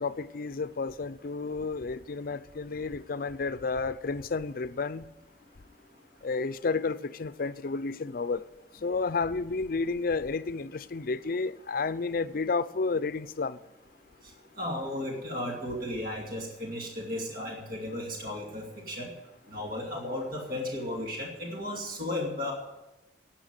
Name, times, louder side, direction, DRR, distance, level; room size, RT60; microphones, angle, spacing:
voice 1, 0.0-5.0 6.2-8.4 8.8-13.6, left 4 dB, 50° left, 0.5 m, -31 dB
voice 2, 14.6-19.1 19.5-22.5, left 1 dB, 50° right, 2.5 m, -34 dB
11.5 x 8.8 x 9.0 m
head